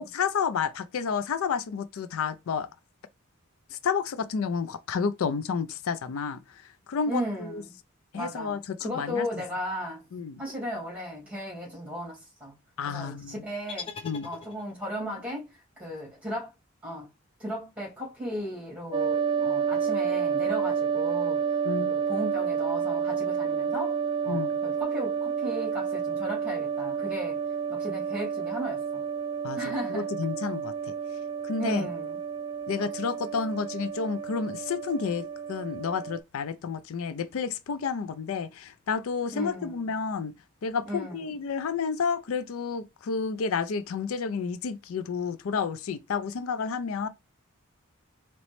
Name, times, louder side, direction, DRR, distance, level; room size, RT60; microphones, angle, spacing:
voice 1, 0.0-2.7 3.7-7.6 8.1-9.3 10.1-10.4 12.8-13.4 14.0-14.3 21.6-21.9 24.3-24.5 29.4-30.7 31.4-31.9 32.7-40.3 40.6-47.1, left 5 dB, 85° left, 0.4 m, -30 dB
voice 2, 7.1-7.8 8.1-10.1 10.4-12.6 12.9-13.9 14.2-16.5 16.8-17.1 17.4-21.4 21.8-24.0 24.2-27.4 27.7-29.0 29.6-30.1 31.6-32.2 39.3-39.8 40.9-41.3, equal, 5° right, 2.2 m, -35 dB
sound 1, 13.7-15.0, left 5 dB, 25° left, 0.6 m, -41 dB
sound 2, 18.9-36.2, right 6 dB, 25° right, 0.4 m, -30 dB
4.1 x 3.0 x 3.1 m
head